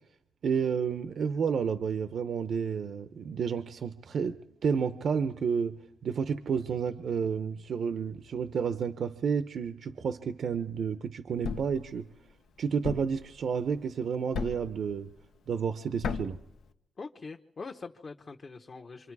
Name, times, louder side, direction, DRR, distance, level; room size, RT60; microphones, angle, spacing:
voice 1, 0.4-12.1 12.6-15.1 15.5-16.4, right 6 dB, 70° right, 0.8 m, -31 dB
Thump thud, 11.4-11.8 12.8-13.2 14.3-14.7 16.0-16.4, left 5 dB, 85° left, 1.0 m, -34 dB
voice 2, 17.0-19.1, left 4 dB, 45° left, 1.1 m, -43 dB
27.0 x 26.0 x 4.8 m
cardioid pair, 85°, 0 cm